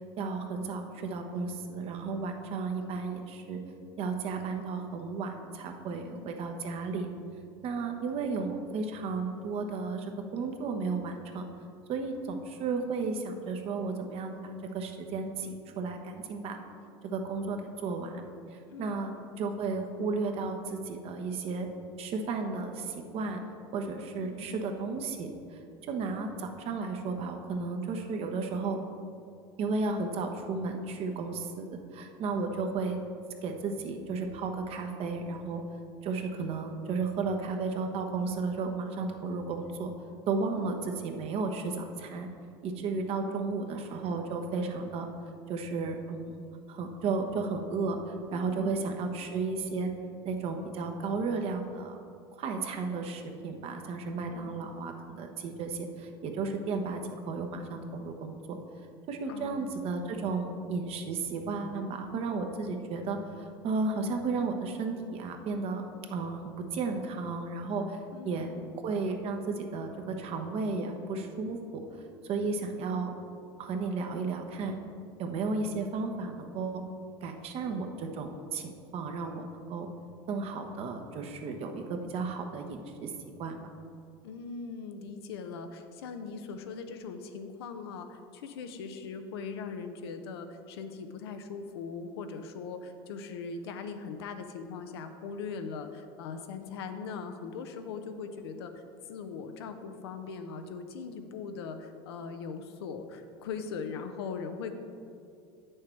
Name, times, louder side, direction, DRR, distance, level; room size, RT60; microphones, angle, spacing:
voice 1, 0.2-3.6 4.0-7.1 7.6-11.5 11.9-16.6 17.0-18.2 18.8-19.1 19.4-21.7 22.0-23.4 23.7-25.6 25.9-28.8 29.6-33.0 33.4-35.6 36.0-39.9 40.3-42.3 42.6-45.1 45.5-46.4 46.7-49.9 50.2-52.0 52.3-57.0 57.3-58.6 59.1-65.8 66.1-68.0 68.2-68.5 68.8-71.8 72.2-73.2 73.6-74.7 75.2-76.8 77.2-79.9 80.3-83.7, right 4 dB, 50° right, 4 dB, 1.0 m, -33 dB
voice 2, 5.8-6.3 18.7-19.2 24.2-24.6 27.9-28.2 32.3-32.5 40.5-41.0 43.2-43.6 48.3-48.7 54.3-54.6 59.2-59.7 68.1-68.6 84.2-98.8 99.1-104.7, left 5 dB, 85° left, 7 dB, 0.7 m, -40 dB
8.7 x 6.6 x 4.6 m, 2.5 s
supercardioid pair, 95°, 13 cm